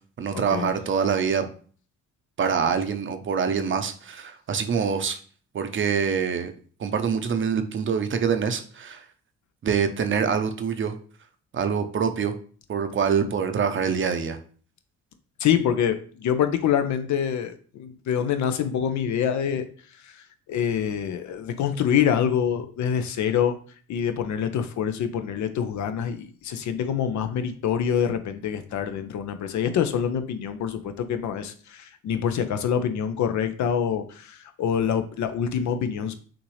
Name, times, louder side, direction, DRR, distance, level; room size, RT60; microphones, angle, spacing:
voice 1, 0.2-1.5 2.4-5.2 5.5-6.5 6.8-9.0 9.6-11.0 11.5-12.3 12.7-14.4, right 6 dB, 40° right, 0.7 m, -25 dB
voice 2, 15.4-19.6 20.5-23.6 23.9-36.1, left 8 dB, 70° left, 0.6 m, -25 dB
5.9 x 2.6 x 3.2 m
cardioid pair, 90°, 30 cm